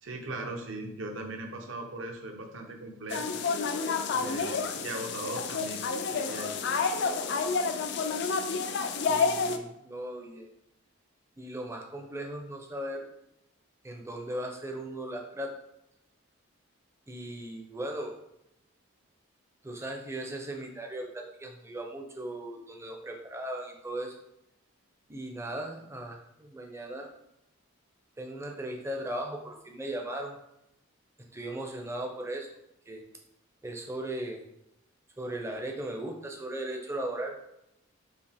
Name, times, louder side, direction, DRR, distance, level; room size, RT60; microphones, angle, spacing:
voice 1, 0.0-3.3 4.2-5.8 6.1-6.6, right 2 dB, 60° right, 3 dB, 0.7 m, -38 dB
sound 1, 3.1-9.6, left 5 dB, 55° left, 0.3 m, -29 dB
voice 2, 9.1-10.5 11.4-13.0 13.8-15.5 17.1-18.1 19.6-24.1 25.1-27.1 28.2-30.4 31.3-32.5 32.9-33.0 33.6-34.4 35.2-37.3, right 1 dB, 15° right, 1 dB, 0.5 m, -37 dB
4.8 x 2.9 x 3.4 m, 0.83 s
head